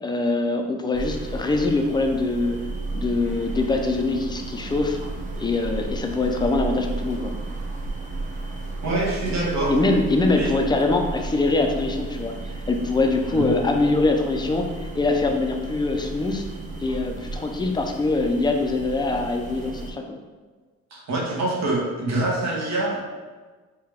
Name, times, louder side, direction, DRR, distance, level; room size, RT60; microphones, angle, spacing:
voice 1, 0.0-2.6 2.9-5.0 5.4-7.3 9.7-12.3 12.7-14.7 14.9-16.4 16.8-20.0, left 3 dB, 15° left, 3 dB, 0.4 m, -23 dB
sound 1, 0.9-19.9, right 2 dB, 25° right, 0.7 m, -33 dB
voice 2, 8.8-9.7 10.3-10.5 13.3-13.5 20.9-23.0, right 2 dB, 65° right, -3 dB, 1.2 m, -25 dB
4.7 x 2.3 x 3.5 m, 1.3 s
cardioid pair, 90°, 30 cm